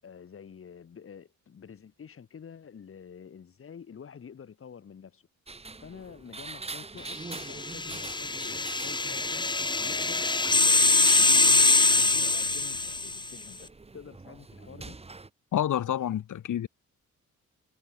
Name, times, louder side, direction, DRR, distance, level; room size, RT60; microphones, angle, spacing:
voice 1, 0.0-5.3 5.8-9.5 9.8-15.0, left 7 dB, 45° left, 7.9 m, -48 dB
sound 1, 5.5-15.3, right 3 dB, 20° right, 6.9 m, -43 dB
sound 2, 7.4-13.3, left 3 dB, 15° left, 1.4 m, -24 dB
voice 2, 15.5-16.7, left 10 dB, 70° left, 3.4 m, -28 dB
wide cardioid pair, 170°, 31 cm